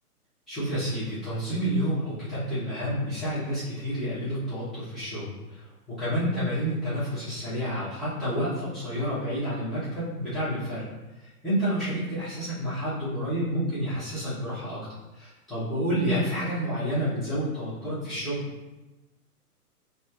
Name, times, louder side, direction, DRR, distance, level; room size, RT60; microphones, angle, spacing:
voice 1, 0.5-10.9 11.2-14.8 15.1-18.5, equal, ahead, -15 dB, 1.1 m, -29 dB
4.2 x 2.6 x 2.5 m, 1.1 s
figure-of-eight pair, 125°, 47 cm